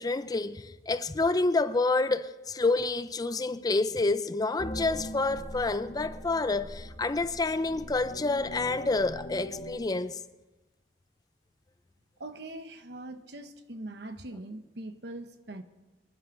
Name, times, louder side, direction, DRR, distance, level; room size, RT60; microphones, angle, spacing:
voice 1, 0.0-10.2, left 3 dB, 20° left, 0.4 m, -28 dB
sound 1, 4.6-9.8, left 1 dB, 35° left, 1.2 m, -41 dB
voice 2, 12.2-15.6, right 1 dB, 65° right, 1.0 m, -42 dB
24.5 x 11.0 x 3.8 m
head